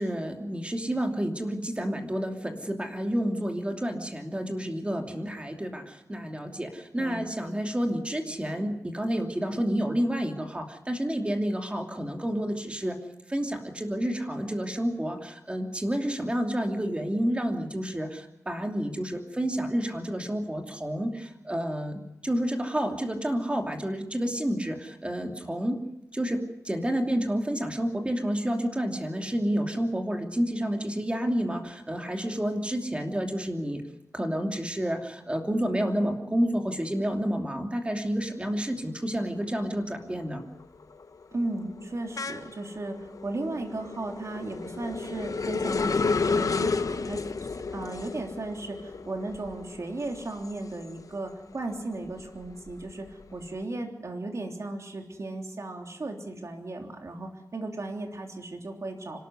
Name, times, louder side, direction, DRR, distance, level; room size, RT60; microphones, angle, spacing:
voice 1, 0.0-13.0 13.3-25.9 26.1-33.8 34.1-40.4, equal, 20° right, 3 dB, 2.8 m, -29 dB
sound 1, 39.2-39.7 40.0-51.3 51.7-53.4, left 4 dB, 65° left, 1.0 m, -32 dB
voice 2, 41.3-59.2, right 2 dB, 55° right, 3 dB, 3.4 m, -36 dB
25.5 x 13.5 x 9.6 m, 0.84 s
wide cardioid pair, 110°, 6 cm